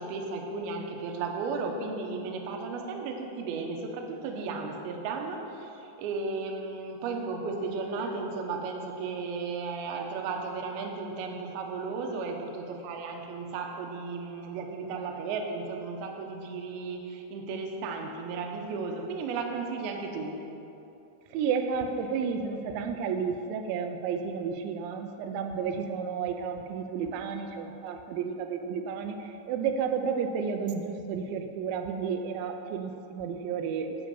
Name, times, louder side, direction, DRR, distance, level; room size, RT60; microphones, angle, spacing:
voice 1, 0.0-20.3, right 4 dB, 75° right, 2 dB, 2.6 m, -34 dB
voice 2, 21.3-34.0, right 6 dB, 90° right, 6 dB, 3.0 m, -32 dB
10.0 x 6.5 x 7.0 m, 2.8 s
omnidirectional pair, 5.1 m